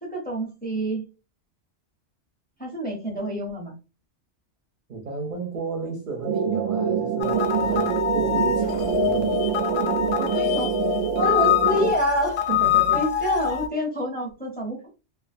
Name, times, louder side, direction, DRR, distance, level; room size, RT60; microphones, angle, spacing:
voice 1, 0.0-1.0 2.6-3.7 10.2-10.7 11.1-12.4 12.9-14.9, right 1 dB, 10° left, 0.6 m, -27 dB
voice 2, 4.9-9.4 12.5-13.3, right 4 dB, 55° right, 0.6 m, -34 dB
sound 1, 6.2-11.9, right 7 dB, 90° right, 1.0 m, -25 dB
sound 2, 7.2-13.7, left 10 dB, 65° left, 0.7 m, -24 dB
2.3 x 2.3 x 2.4 m
omnidirectional pair, 1.2 m